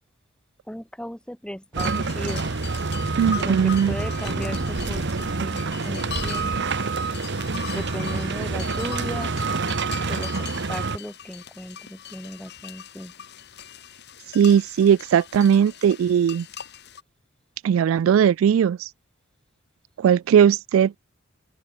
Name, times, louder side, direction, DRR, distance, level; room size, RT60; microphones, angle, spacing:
voice 1, 0.7-2.5 3.3-6.7 7.7-9.3 10.1-13.1, equal, 5° left, 4.5 m, -36 dB
sound 1, 1.7-11.0, right 4 dB, 60° right, 1.1 m, -27 dB
sound 2, 1.8-17.0, left 8 dB, 55° left, 4.5 m, -40 dB
sound 3, 2.8-8.3 8.7-8.9 9.4-9.5, right 1 dB, 20° right, 0.7 m, -38 dB
voice 2, 3.2-4.0 14.3-16.5 17.6-18.9 20.0-21.0, right 8 dB, 80° right, 0.3 m, -18 dB
open air
head